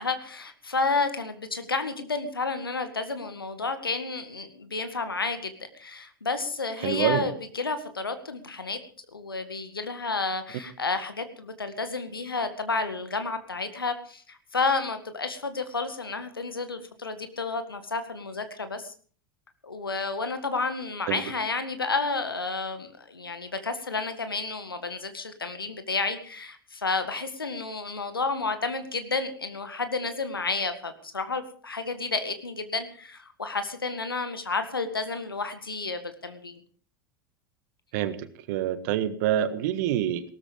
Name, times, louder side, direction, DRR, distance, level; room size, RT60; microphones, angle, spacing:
voice 1, 0.0-8.8 9.1-18.9 19.6-36.6, left 4 dB, 80° left, 9 dB, 1.9 m, -31 dB
voice 2, 6.8-7.3 21.1-21.2 37.9-40.2, right 11 dB, 55° right, 12 dB, 1.6 m, -26 dB
18.0 x 13.5 x 5.3 m, 0.43 s
figure-of-eight pair, 85°, 12 cm